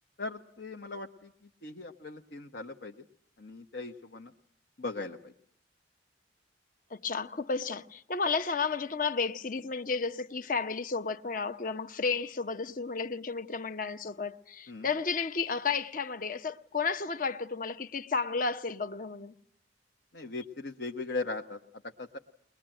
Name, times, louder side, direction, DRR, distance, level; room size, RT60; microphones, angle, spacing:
voice 1, 0.2-1.3 1.6-3.0 3.4-4.3 4.8-5.3 14.7-14.9 20.1-22.2, left 3 dB, 70° left, 1.1 m, -39 dB
voice 2, 6.9-19.3, left 4 dB, 45° left, 0.9 m, -32 dB
21.5 x 21.0 x 8.9 m
head